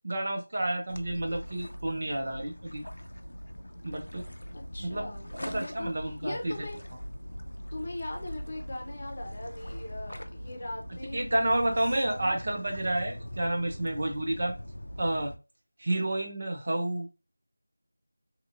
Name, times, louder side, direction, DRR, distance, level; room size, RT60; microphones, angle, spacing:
voice 1, 0.0-2.8 3.8-4.2 4.8-5.1 5.4-6.5 11.1-14.5 15.0-15.3 15.8-17.1, right 1 dB, 45° right, 2 dB, 0.7 m, -30 dB
sound 1, 0.9-15.4, equal, 80° left, 0.4 m, -42 dB
voice 2, 4.5-6.8 7.7-11.8 12.1-12.4, left 1 dB, 40° left, 1 dB, 0.8 m, -40 dB
2.8 x 2.6 x 2.6 m, 0.27 s
figure-of-eight pair, 170°, 0 cm